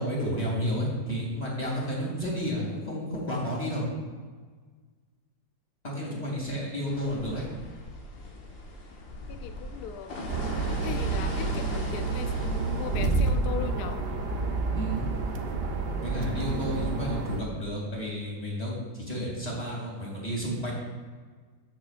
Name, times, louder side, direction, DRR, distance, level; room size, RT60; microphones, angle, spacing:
voice 1, 0.0-3.8 5.8-7.5 14.8-15.1 16.0-20.7, equal, 20° left, -4 dB, 2.6 m, -31 dB
sound 1, 6.9-13.2, left 2 dB, 85° left, 2.0 m, -39 dB
voice 2, 9.3-10.2 10.8-14.0, left 8 dB, 70° left, 9 dB, 1.1 m, -38 dB
sound 2, 10.3-17.4, right 3 dB, 65° right, 0.6 m, -29 dB
16.0 x 6.6 x 2.5 m, 1.5 s
omnidirectional pair, 2.0 m